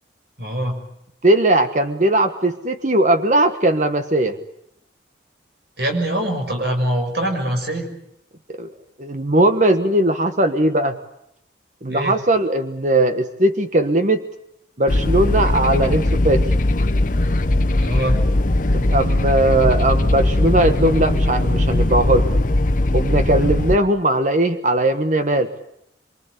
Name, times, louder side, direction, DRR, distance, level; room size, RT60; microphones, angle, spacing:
voice 1, 0.4-0.8 5.8-7.9 11.9-12.2 17.8-18.2, right 1 dB, 60° right, 4 dB, 6.5 m, -23 dB
voice 2, 1.2-4.4 8.5-8.7 9.0-11.0 11.8-14.2 14.8-16.4 18.7-22.3 22.9-25.5, right 1 dB, 40° right, 8 dB, 1.3 m, -19 dB
sound 1, 14.9-23.8, left 1 dB, 45° left, 1.0 m, -19 dB
25.5 x 24.0 x 8.3 m, 0.76 s
head